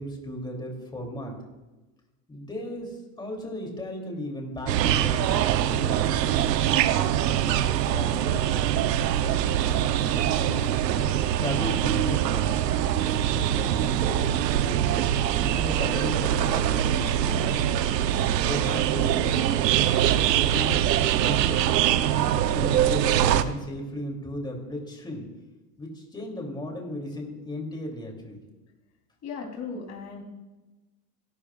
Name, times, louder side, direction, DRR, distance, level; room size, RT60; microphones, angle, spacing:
voice 1, 0.0-1.3 2.3-6.2 6.6-9.1 9.6-12.5 13.2-17.8 18.4-19.5 20.0-20.8 21.1-21.7 22.5-25.3 25.8-28.4, equal, 10° left, 0 dB, 3.1 m, -36 dB
sound 1, 4.7-23.4, right 11 dB, 85° right, 0.9 m, -23 dB
voice 2, 29.2-30.2, left 5 dB, 35° left, 0 dB, 3.5 m, -36 dB
27.0 x 12.0 x 2.5 m, 1.1 s
supercardioid pair, 120°, 48 cm